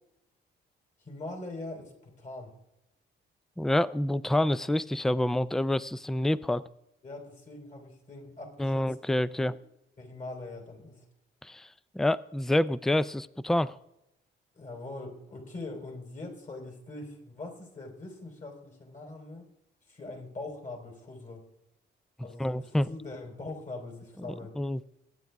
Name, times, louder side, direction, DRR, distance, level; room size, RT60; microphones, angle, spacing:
voice 1, 1.0-2.5 7.0-8.9 9.4-9.6 10.0-11.0 14.5-19.5 19.9-21.4 22.2-24.5, left 2 dB, 40° left, 2 dB, 4.3 m, -42 dB
voice 2, 3.6-6.6 8.6-9.5 11.4-11.7 11.9-13.7 22.4-22.9 24.3-24.8, left 1 dB, ahead, 18 dB, 0.4 m, -27 dB
23.0 x 9.3 x 3.5 m, 0.87 s
cardioid pair, 105°, 20 cm